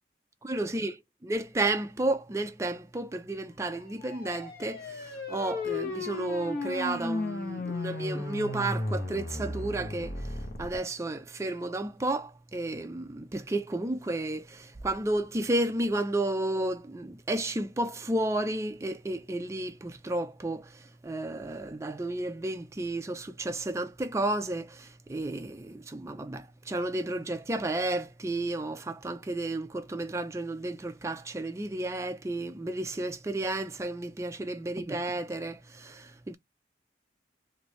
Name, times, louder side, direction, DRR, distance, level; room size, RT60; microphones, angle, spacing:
voice 1, 0.4-10.1 10.6-20.7 21.0-36.4, right 2 dB, 15° right, 0.4 m, -32 dB
sound 1, 3.8-10.8, left 2 dB, 55° left, 0.9 m, -35 dB
3.2 x 2.6 x 3.0 m
head